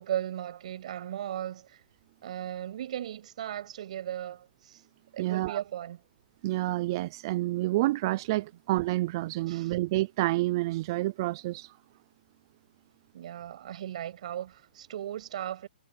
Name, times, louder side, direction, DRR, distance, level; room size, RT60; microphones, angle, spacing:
voice 1, 0.0-1.8 2.2-4.8 5.1-6.0 9.5-9.7 13.1-15.7, right 11 dB, 45° right, 7.5 m, -36 dB
voice 2, 5.2-5.6 6.4-11.7, right 18 dB, 25° right, 0.4 m, -29 dB
hypercardioid pair, 170°, 5 cm